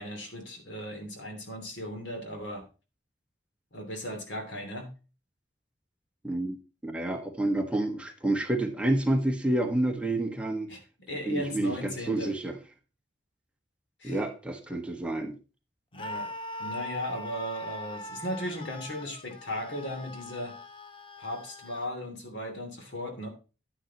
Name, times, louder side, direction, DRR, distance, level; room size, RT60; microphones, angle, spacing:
voice 1, 0.0-2.6 3.7-4.9 10.7-10.8 11.1-12.3 14.0-14.2 15.9-16.3 16.6-20.6 21.2-23.3, equal, 80° left, 5 dB, 2.9 m, -36 dB
voice 2, 6.2-6.6 6.8-10.7 11.3-12.5 14.0-15.4, right 1 dB, 5° right, 3 dB, 1.3 m, -29 dB
Screaming, 15.9-21.9, left 1 dB, 30° left, 0.8 m, -41 dB
10.0 x 9.9 x 2.9 m, 0.32 s
head